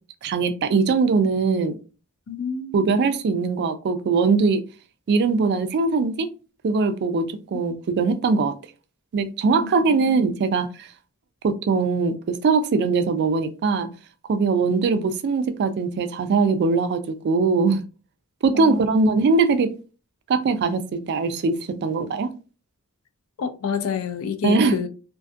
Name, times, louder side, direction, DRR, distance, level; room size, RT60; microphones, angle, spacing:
voice 1, 0.2-1.8 2.7-4.6 5.1-6.3 6.6-8.5 9.1-10.9 11.4-13.9 14.3-17.8 18.4-19.7 20.3-21.5 21.8-22.3 24.4-24.8, right 4 dB, 50° right, 0.3 m, -21 dB
voice 2, 2.3-2.8 9.6-10.0 18.5-19.0 23.4-24.9, left 6 dB, 70° left, 0.4 m, -28 dB
2.5 x 2.4 x 2.4 m
head